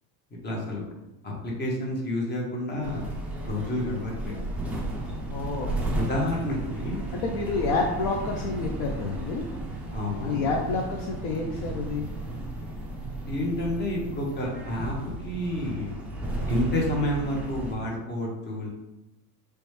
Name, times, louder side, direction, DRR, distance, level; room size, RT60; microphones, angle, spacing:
voice 1, 0.4-0.8 1.2-3.1 3.4-4.4 5.9-7.0 9.9-10.5 13.3-14.9 15.2-16.0 16.5-18.7, left 1 dB, 20° left, -1 dB, 0.9 m, -29 dB
sound 1, 2.8-17.7, right 1 dB, 5° right, 0.3 m, -34 dB
voice 2, 5.3-5.7 7.1-9.4 10.2-12.1, left 3 dB, 55° left, 1 dB, 0.5 m, -29 dB
3.2 x 3.0 x 3.2 m, 0.95 s
supercardioid pair, 125°, 47 cm